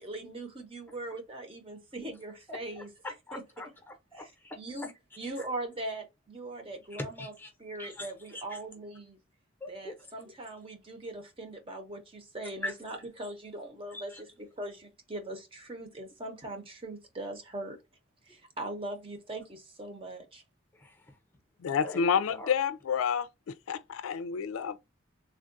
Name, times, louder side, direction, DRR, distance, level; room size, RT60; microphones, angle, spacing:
voice 1, 0.0-2.9 3.3-3.4 4.1-4.3 4.6-4.9 5.2-7.3 7.6-9.2 9.7-17.8 18.2-20.4, right 2 dB, 25° right, 0.8 m, -40 dB
voice 2, 2.5-4.9 5.2-5.5 6.9-7.5 7.8-8.6 9.6-9.9 12.6-12.7 13.9-14.2 20.7-21.2 21.8-22.5, left 2 dB, 10° left, 0.7 m, -42 dB
voice 3, 21.6-24.8, left 7 dB, 90° left, 0.4 m, -29 dB
3.5 x 2.3 x 2.5 m
head